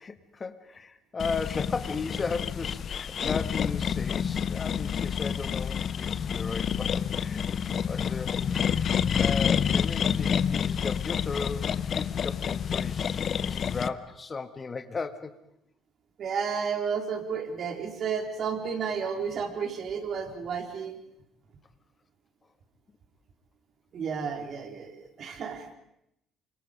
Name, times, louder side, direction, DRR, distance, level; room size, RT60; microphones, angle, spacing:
voice 1, 0.0-7.6 7.9-15.3, left 4 dB, 35° left, 10 dB, 1.7 m, -36 dB
sound 1, 1.2-13.9, left 7 dB, 50° left, 0.8 m, -28 dB
voice 2, 16.2-20.9 23.9-25.7, right 6 dB, 50° right, 4 dB, 4.0 m, -32 dB
28.0 x 25.0 x 5.2 m, 0.81 s
hypercardioid pair, 55°, 0 cm